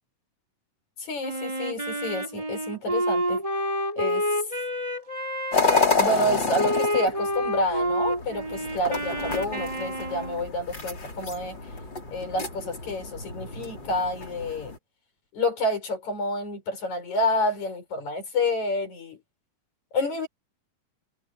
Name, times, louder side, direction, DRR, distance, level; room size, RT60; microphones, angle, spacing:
voice 1, 1.0-3.4 4.0-4.3 6.0-11.6 12.1-14.7 15.3-19.2 19.9-20.3, left 1 dB, 75° left, 7.1 m, -29 dB
Wind instrument woodwind instrument, 1.2-5.9 6.6-10.5, equal, 10° right, 6.0 m, -29 dB
sound 1, 5.5-14.8, left 3 dB, 35° left, 5.2 m, -29 dB
omnidirectional pair, 3.3 m